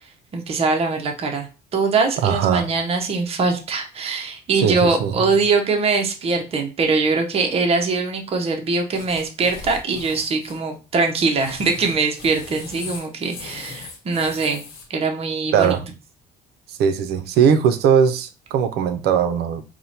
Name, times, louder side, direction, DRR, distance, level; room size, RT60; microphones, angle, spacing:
voice 1, 0.3-1.5 1.7-14.6 14.9-15.8, right 4 dB, 35° right, 0.7 m, -22 dB
voice 2, 2.2-2.7 4.6-5.1 15.5-15.8 16.7-19.6, right 7 dB, 75° right, 0.5 m, -19 dB
sound 1, 8.9-10.6 11.2-14.8, left 4 dB, 90° left, 1.1 m, -39 dB
4.4 x 2.1 x 2.7 m
cardioid pair, 110°, 17 cm